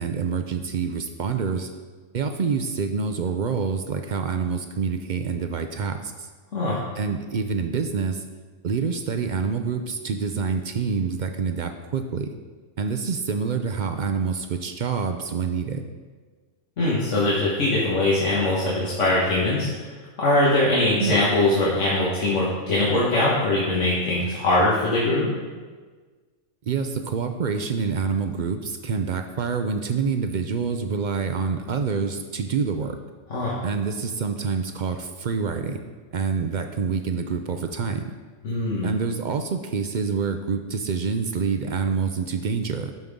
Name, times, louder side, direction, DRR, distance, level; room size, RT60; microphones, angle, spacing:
voice 1, 0.0-1.7 2.1-6.3 7.0-8.2 8.6-12.3 12.8-15.8 21.0-21.2 26.7-33.0 33.6-35.8 36.1-38.0 38.8-42.9, right 5 dB, 55° right, 6 dB, 0.5 m, -27 dB
voice 2, 16.8-19.9 20.2-25.3 33.3-33.6 38.4-38.9, left 2 dB, 75° left, -8 dB, 1.8 m, -22 dB
11.5 x 5.4 x 3.7 m, 1.4 s
omnidirectional pair, 1.3 m